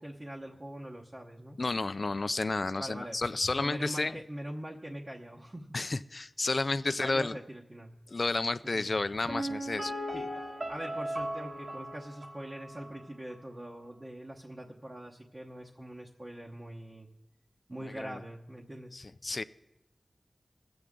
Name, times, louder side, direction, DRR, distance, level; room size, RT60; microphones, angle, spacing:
voice 1, 0.0-1.6 2.8-3.2 3.6-5.7 7.0-7.9 8.6-8.9 10.1-10.3 10.7-17.1 17.7-19.0, right 1 dB, 35° right, -2 dB, 1.0 m, -43 dB
voice 2, 1.6-4.2 5.7-7.4 8.1-9.9 17.8-18.2 18.9-19.4, left 3 dB, 55° left, 12 dB, 0.3 m, -31 dB
Piano, 9.3-13.0 13.3-13.4, equal, 55° right, 1.3 m, -37 dB
20.5 x 7.9 x 3.7 m, 0.95 s
wide cardioid pair, 55°, 0 cm